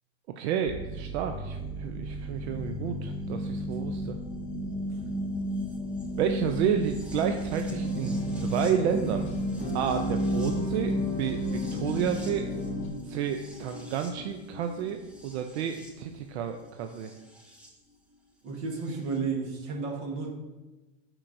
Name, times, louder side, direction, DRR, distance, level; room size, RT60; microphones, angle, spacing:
voice 1, 0.4-4.2 6.2-9.2 9.7-12.5 13.1-15.0 15.2-17.1, right 8 dB, 80° right, 6 dB, 0.5 m, -30 dB
sound 1, 0.7-17.7 18.9-19.0, equal, 5° right, 0.4 m, -35 dB
sound 2, 7.7-12.9, left 1 dB, 20° left, 0.8 m, -34 dB
voice 2, 18.4-20.3, right 4 dB, 50° right, 1 dB, 1.3 m, -32 dB
8.4 x 4.5 x 2.6 m, 1.1 s
supercardioid pair, 155°, 33 cm